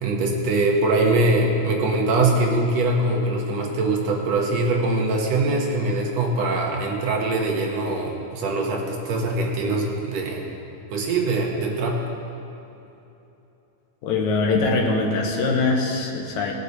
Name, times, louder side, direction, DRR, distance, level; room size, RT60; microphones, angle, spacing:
voice 1, 0.0-10.5 10.9-12.0, right 2 dB, 65° right, -1 dB, 2.1 m, -22 dB
voice 2, 14.0-16.5, left 3 dB, 75° left, 1 dB, 2.3 m, -22 dB
18.0 x 6.6 x 4.0 m, 2.9 s
omnidirectional pair, 3.4 m